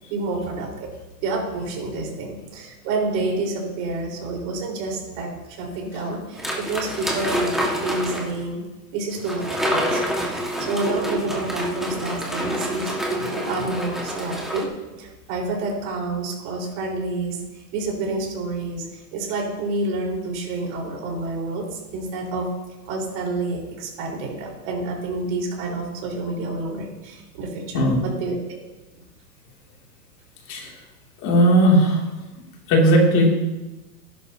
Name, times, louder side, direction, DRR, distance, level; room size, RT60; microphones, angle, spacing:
voice 1, 0.1-0.9 1.2-8.6 8.9-14.7 15.0-22.5 22.9-28.3, right 3 dB, 45° right, -1 dB, 4.7 m, -29 dB
sound 1, 6.4-8.4 9.2-14.6, equal, ahead, 1.8 m, -27 dB
voice 2, 31.2-32.0 32.7-33.3, right 1 dB, 35° left, -1 dB, 2.9 m, -16 dB
17.0 x 11.5 x 2.9 m, 1.1 s
hypercardioid pair, 135°, 49 cm